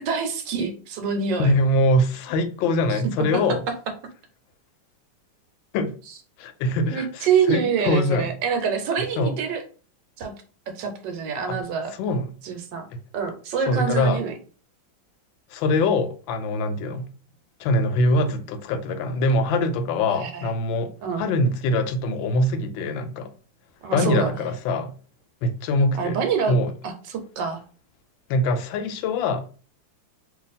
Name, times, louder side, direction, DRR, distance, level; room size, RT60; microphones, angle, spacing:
voice 1, 0.0-1.5 6.9-9.6 10.2-10.3 10.8-11.9 12.4-12.8 13.1-14.3 20.1-20.5 21.0-21.2 23.8-24.5 26.0-26.5 26.8-27.6, right 6 dB, 75° right, 1.3 m, -26 dB
voice 2, 1.4-3.6 5.7-5.9 6.4-8.3 9.2-9.4 11.5-11.6 12.0-12.3 13.7-14.2 15.5-17.1 17.6-23.3 23.9-24.9 25.4-26.7 28.3-29.5, left 1 dB, 90° left, 1.3 m, -23 dB
2.9 x 2.5 x 4.0 m
omnidirectional pair, 2.0 m